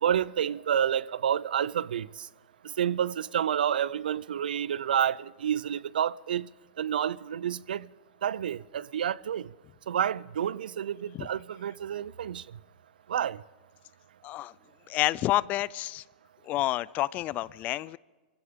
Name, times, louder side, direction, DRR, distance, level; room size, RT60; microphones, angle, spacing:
voice 1, 0.0-2.3 2.8-6.5 6.8-7.9 8.2-9.5 9.9-12.4 13.1-13.4, right 9 dB, 85° right, 0.5 m, -29 dB
voice 2, 14.9-16.0 16.4-18.0, left 15 dB, 35° left, 0.4 m, -29 dB
23.0 x 16.0 x 3.7 m
hypercardioid pair, 125°, 5 cm